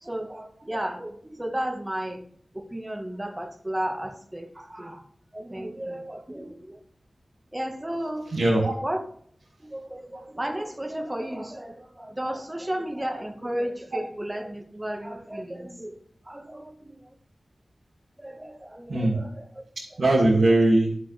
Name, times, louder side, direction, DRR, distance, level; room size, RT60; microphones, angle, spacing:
voice 1, 0.0-2.2 2.5-5.1 5.3-6.8 7.5-8.3 8.8-9.0 9.6-16.0 16.3-17.0 18.2-19.4, right 1 dB, 20° right, 5 dB, 1.7 m, -33 dB
voice 2, 8.3-8.7 10.1-10.2 18.9-19.2 19.8-21.0, right 2 dB, 80° right, -5 dB, 2.6 m, -21 dB
11.0 x 7.9 x 3.6 m, 0.64 s
cardioid pair, 50°, 0 cm